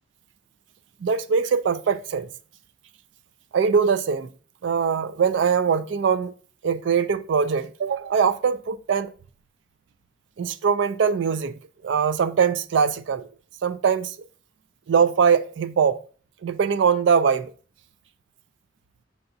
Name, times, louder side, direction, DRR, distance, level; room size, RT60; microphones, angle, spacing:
voice 1, 1.0-2.3 3.5-4.3 4.6-6.3 6.6-9.1 10.4-11.6 11.8-13.3 13.6-14.2 14.9-16.0 16.4-17.5, right 6 dB, 65° right, 0.4 m, -22 dB
6.9 x 6.6 x 2.7 m
head